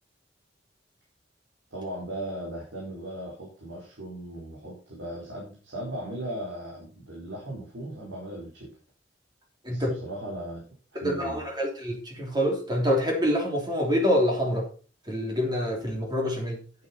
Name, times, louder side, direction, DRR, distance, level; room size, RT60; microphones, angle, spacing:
voice 1, 1.7-8.7 9.7-10.6 10.9-11.4, right 1 dB, 70° right, -4 dB, 4.4 m, -37 dB
voice 2, 10.9-14.6 15.1-16.6, equal, 20° right, 0 dB, 2.9 m, -26 dB
11.0 x 9.0 x 4.3 m, 0.38 s
head